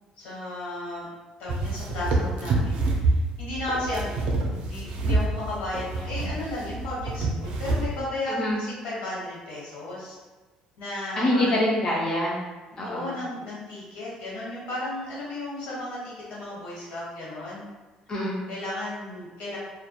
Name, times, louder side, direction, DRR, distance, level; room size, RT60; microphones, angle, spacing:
voice 1, 0.2-1.1 1.4-10.2 10.8-11.5 12.8-17.7 18.5-19.6, left 1 dB, 75° left, -6 dB, 1.1 m, -34 dB
sound 1, 1.5-8.0, right 2 dB, 65° right, 0.4 m, -27 dB
voice 2, 8.3-8.6 11.2-12.4 12.8-13.1 18.1-18.5, left 1 dB, 30° left, -5 dB, 0.3 m, -25 dB
2.1 x 2.1 x 2.8 m, 1.3 s
cardioid pair, 160°, 2 cm